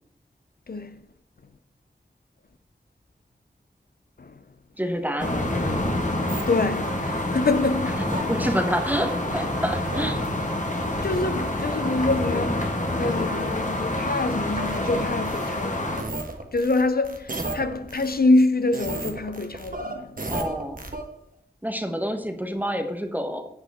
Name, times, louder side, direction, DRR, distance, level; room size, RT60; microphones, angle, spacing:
voice 1, 0.7-1.0 4.2-4.4 6.5-8.2 11.0-16.1 16.5-20.2, left 2 dB, 60° left, 0.6 m, -25 dB
voice 2, 4.8-5.5 8.3-10.2 20.2-20.8 21.6-23.4, equal, 10° right, 1.1 m, -28 dB
sound 1, 5.2-16.0, left 1 dB, 45° left, 1.7 m, -27 dB
sound 2, 6.3-6.4 8.1-8.2 9.9-10.0 14.5-15.5 16.0-18.1 18.7-21.0, right 2 dB, 55° right, 1.4 m, -33 dB
10.5 x 7.0 x 3.6 m
wide cardioid pair, 55°, 17 cm